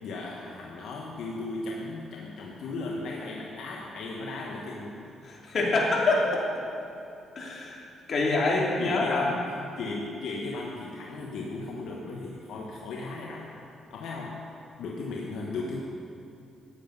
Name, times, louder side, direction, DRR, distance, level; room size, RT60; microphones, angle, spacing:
voice 1, 0.0-5.0 8.8-9.4 9.8-13.5 13.9-14.4 14.8-15.8, left 3 dB, 80° left, -2 dB, 1.1 m, -36 dB
voice 2, 5.2-6.4 7.3-7.8 8.1-9.3, left 2 dB, 50° left, -3 dB, 2.9 m, -25 dB
13.5 x 9.2 x 5.4 m, 2.6 s
cardioid pair, 90°, 0 cm